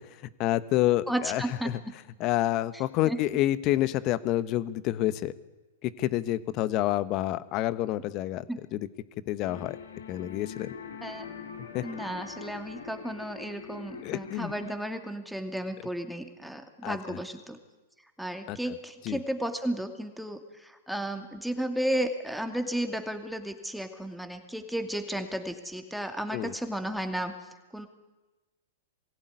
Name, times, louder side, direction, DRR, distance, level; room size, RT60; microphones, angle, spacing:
voice 1, 0.4-1.8 2.2-5.3 5.8-8.4 8.7-8.9 9.3-9.8 10.1-10.7 11.7-11.8 14.0-14.5 16.8-17.2 18.5-18.6 19.0-19.2 26.3-26.5, left 14 dB, 40° left, 15 dB, 1.2 m, -28 dB
voice 2, 1.1-1.7 2.7-3.2 8.5-8.6 11.0-11.2 11.8-17.6 18.2-27.3 27.7-27.9, right 1 dB, ahead, 6 dB, 2.4 m, -33 dB
sound 1, 9.4-14.7, left 6 dB, 85° left, 3.2 m, -43 dB
22.5 x 16.5 x 9.6 m, 1.2 s
hypercardioid pair, 120°, 0 cm